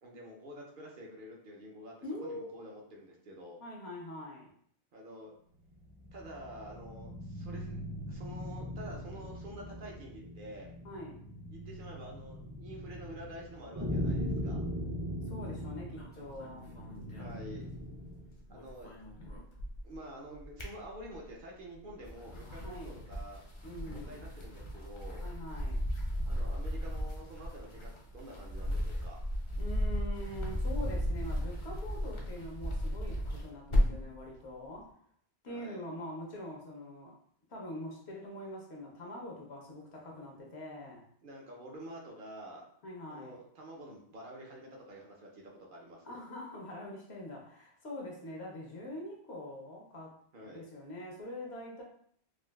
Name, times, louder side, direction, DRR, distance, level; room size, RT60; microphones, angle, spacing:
voice 1, 0.0-1.9 2.2-3.6 4.9-5.3 6.1-7.8 8.1-10.7 11.5-14.6 17.2-17.7 18.5-18.9 19.8-23.4 23.9-25.2 26.3-29.2 35.5-35.8 41.2-42.6 43.1-46.2 50.3-50.6, right 1 dB, 55° right, -1 dB, 0.7 m, -48 dB
voice 2, 2.0-2.5 3.6-4.5 10.8-11.2 15.3-16.7 22.6-22.9 23.6-24.2 25.2-25.8 29.6-35.0 35.4-37.1 37.5-41.0 42.8-43.4 46.0-50.2 50.4-51.8, left 1 dB, 75° left, -1 dB, 1.1 m, -44 dB
sound 1, 5.7-18.3, equal, 30° right, 0.4 m, -40 dB
sound 2, 15.9-18.1 18.4-20.0 20.3-21.4 21.9-34.1, equal, 40° left, 0.5 m, -35 dB
3.7 x 2.4 x 2.3 m, 0.62 s
omnidirectional pair, 1.1 m